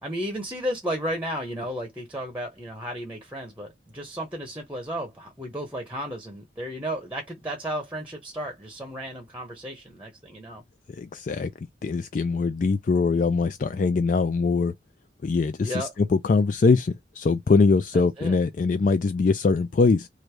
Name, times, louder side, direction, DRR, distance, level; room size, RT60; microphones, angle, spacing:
voice 1, 0.0-10.6 15.6-15.9 18.2-18.3, equal, 10° right, 0.8 m, -33 dB
voice 2, 10.9-11.5 11.8-14.7 15.2-20.1, left 4 dB, 45° left, 0.3 m, -22 dB
3.2 x 2.6 x 4.5 m
head